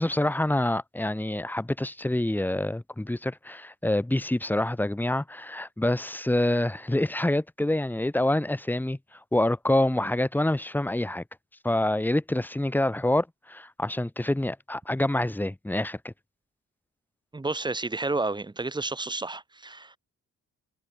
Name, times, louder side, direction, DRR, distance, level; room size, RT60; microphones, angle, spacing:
voice 1, 0.0-9.0 9.3-11.2 11.6-16.1, left 1 dB, 5° left, 1.0 m, -26 dB
voice 2, 17.3-20.0, right 3 dB, 15° right, 1.3 m, -31 dB
cardioid pair, 110°, 33 cm